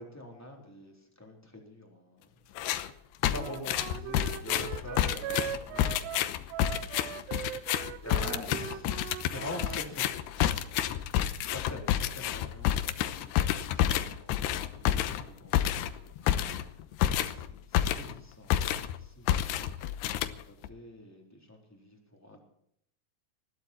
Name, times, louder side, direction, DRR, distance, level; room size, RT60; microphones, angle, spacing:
voice 1, 0.0-2.9 3.3-6.5 8.0-11.2 11.4-16.9 17.3-22.4, left 1 dB, 5° left, 0 dB, 3.1 m, -46 dB
sound 1, 2.6-2.9 3.2-18.2 18.5-19.0 19.3-20.7, left 11 dB, 80° left, 2.9 m, -29 dB
Wind instrument woodwind instrument, 3.3-9.8, right 10 dB, 75° right, 2.8 m, -40 dB
20.0 x 14.0 x 4.5 m, 0.72 s
omnidirectional pair, 5.0 m